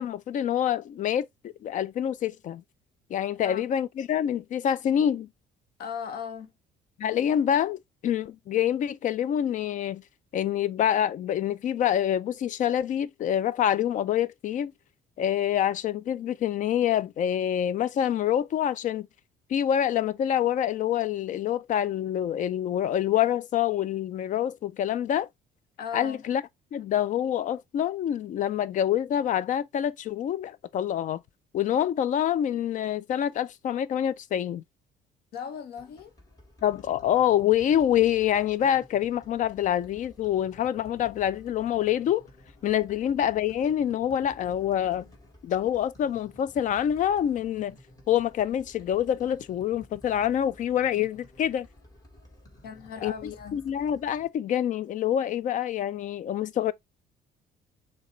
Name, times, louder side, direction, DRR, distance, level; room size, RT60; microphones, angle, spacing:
voice 1, 0.0-2.6 3.1-5.3 7.0-10.0 10.3-14.7 15.2-19.1 19.5-25.3 25.9-26.4 26.7-31.2 31.5-34.6 36.6-42.2 42.6-45.1 45.4-47.8 48.1-51.7 53.0-53.1 53.5-56.7, left 10 dB, 50° left, 0.4 m, -26 dB
voice 2, 5.8-6.5 25.8-26.2 35.3-36.1 52.6-53.6, left 7 dB, 70° left, 1.0 m, -37 dB
sound 1, 35.8-54.3, left 1 dB, 20° left, 1.5 m, -53 dB
6.3 x 2.3 x 3.1 m
cardioid pair, 110°, 17 cm